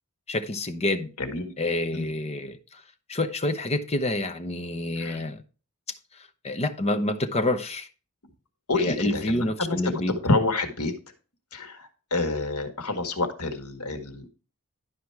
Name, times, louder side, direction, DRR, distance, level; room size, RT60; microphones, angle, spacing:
voice 1, 0.3-1.1 1.6-2.8 3.1-5.4 6.1-7.9 8.8-10.1, left 1 dB, 30° left, 0.9 m, -28 dB
voice 2, 1.2-1.5 1.9-2.1 5.0-5.2 8.7-9.8 10.1-10.9 11.5-14.3, left 3 dB, 75° left, 1.8 m, -28 dB
11.5 x 5.1 x 4.7 m
head